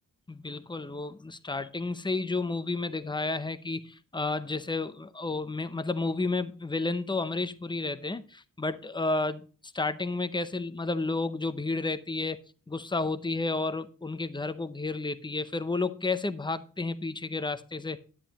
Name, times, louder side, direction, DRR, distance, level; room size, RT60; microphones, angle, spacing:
voice 1, 0.3-12.4 12.7-18.0, left 3 dB, 15° left, 0.6 m, -31 dB
10.5 x 9.7 x 3.0 m
wide cardioid pair, 135°, 33 cm